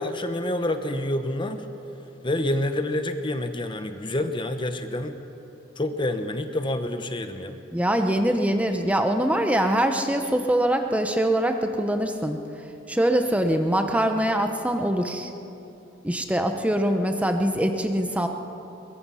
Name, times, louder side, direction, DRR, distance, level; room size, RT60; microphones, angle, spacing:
voice 1, 0.0-1.7 2.2-5.2 5.8-7.6, left 1 dB, 25° left, 8 dB, 0.9 m, -28 dB
voice 2, 7.7-12.4 12.9-15.3 16.0-18.3, right 1 dB, 5° right, 5 dB, 0.9 m, -23 dB
23.0 x 21.5 x 5.7 m, 3.0 s
head